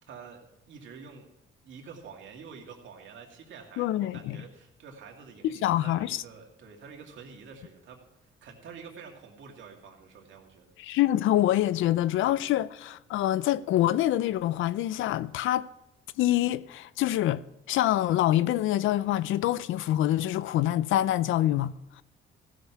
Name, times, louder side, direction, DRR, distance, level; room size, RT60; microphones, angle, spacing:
voice 1, 0.0-1.3 1.6-8.0 8.4-10.7, right 6 dB, 75° right, 2.4 m, -48 dB
voice 2, 3.8-4.4 5.4-6.2 10.8-15.7 16.2-17.4 17.7-22.0, left 13 dB, 80° left, 0.5 m, -26 dB
15.0 x 6.4 x 5.8 m
cardioid pair, 90°, 20 cm